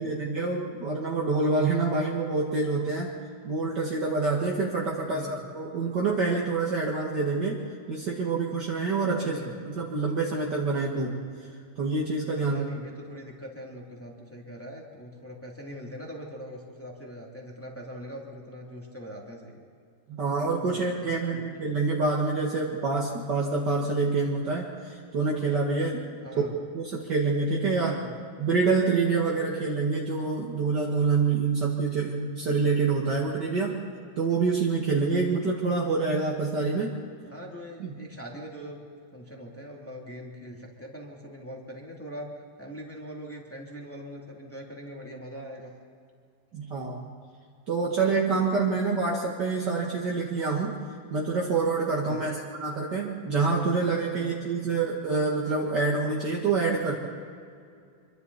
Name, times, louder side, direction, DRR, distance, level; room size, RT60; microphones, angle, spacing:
voice 1, 0.0-3.1 3.4-7.6 7.9-9.4 9.6-11.3 11.8-12.6 20.1-26.0 26.7-27.9 28.4-33.8 34.2-36.9 37.8-37.9 46.5-47.1 47.7-50.8 51.1-56.9, right 4 dB, 40° right, -3 dB, 1.6 m, -26 dB
voice 2, 5.1-5.4 9.2-9.5 12.4-19.7 20.7-21.7 26.2-26.5 27.7-28.1 37.3-38.8 39.1-42.3 42.6-45.7 52.1-52.4 53.8-54.3 54.6-54.9, equal, 5° left, -2 dB, 2.2 m, -42 dB
26.5 x 24.5 x 4.2 m, 2.3 s
omnidirectional pair, 4.3 m